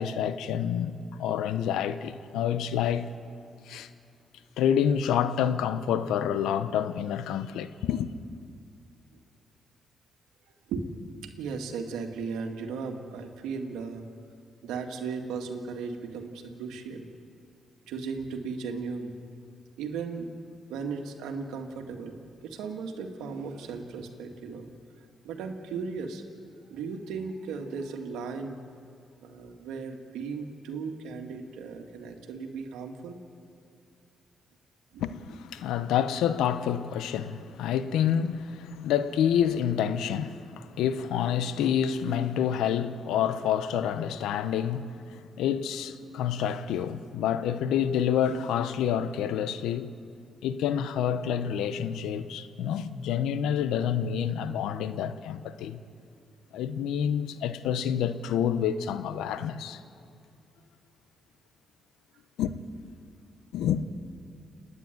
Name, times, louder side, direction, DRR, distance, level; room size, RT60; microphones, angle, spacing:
voice 1, 0.0-3.1 3.7-3.9 4.6-8.1 35.0-49.9 50.4-55.8 56.5-59.8 62.4-62.5 63.5-63.9, left 9 dB, 85° left, 0.8 m, -28 dB
voice 2, 11.2-14.0 14.6-17.1 17.9-19.2 19.8-20.3 20.7-24.7 25.2-26.2 26.7-28.6 29.2-33.2 34.9-35.0, right 5 dB, 85° right, 1.8 m, -36 dB
29.5 x 9.9 x 9.2 m
supercardioid pair, 55°, 0 cm